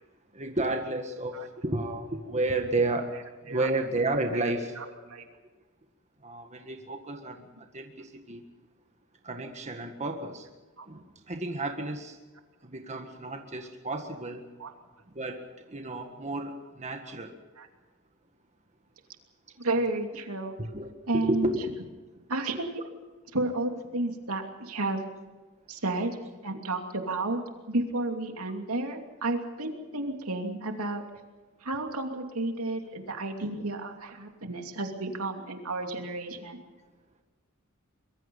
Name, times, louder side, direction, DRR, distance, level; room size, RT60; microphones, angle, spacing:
voice 1, 0.3-3.1 3.4-4.8 6.2-7.5 7.7-8.4 9.2-10.5 10.9-12.2 12.6-14.5 15.1-17.3 20.6-21.7, right 2 dB, 30° right, 4 dB, 1.8 m, -32 dB
voice 2, 4.3-4.9 14.6-14.7 17.6-17.7 19.6-20.5 21.1-21.8 22.3-22.8 23.3-25.0 25.7-27.4 27.7-31.0 31.6-36.6, right 2 dB, 80° right, 4 dB, 2.8 m, -32 dB
24.5 x 22.5 x 5.6 m, 1.2 s
head